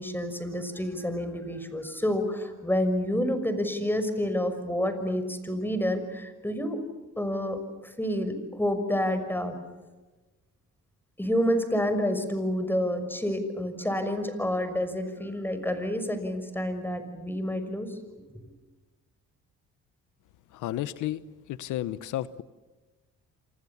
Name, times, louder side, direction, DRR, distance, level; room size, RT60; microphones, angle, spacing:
voice 1, 0.0-6.8 7.2-7.6 7.8-9.5 11.2-18.2, equal, 5° left, 9 dB, 6.0 m, -29 dB
voice 2, 20.5-21.2 21.5-22.4, left 13 dB, 90° left, 15 dB, 1.0 m, -32 dB
27.5 x 27.0 x 7.3 m, 1.2 s
cardioid pair, 90°, 30 cm